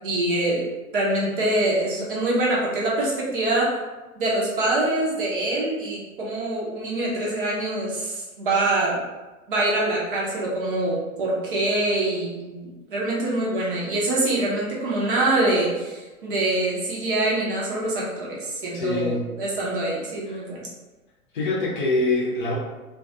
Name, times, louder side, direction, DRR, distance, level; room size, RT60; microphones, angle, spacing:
voice 1, 0.0-0.6 0.9-3.7 4.2-9.0 9.5-20.7, right 2 dB, 40° right, -5 dB, 0.6 m, -24 dB
voice 2, 18.7-19.3 20.3-20.4 21.3-22.6, left 2 dB, 35° left, -6 dB, 0.6 m, -24 dB
2.2 x 2.2 x 2.6 m, 1.2 s
figure-of-eight pair, 105°, 44 cm